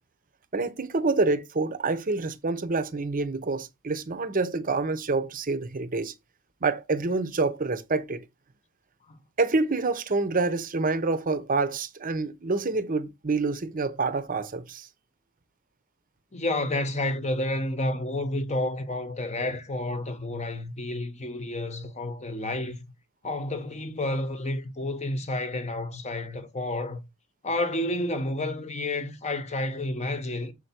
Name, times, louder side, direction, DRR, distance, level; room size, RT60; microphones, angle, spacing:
voice 1, 0.5-6.1 6.6-8.2 9.4-14.9, right 3 dB, 40° right, 0.8 m, -27 dB
voice 2, 16.3-22.8 23.2-27.0 27.4-30.5, left 1 dB, 30° left, 0.9 m, -30 dB
7.1 x 4.5 x 4.4 m
head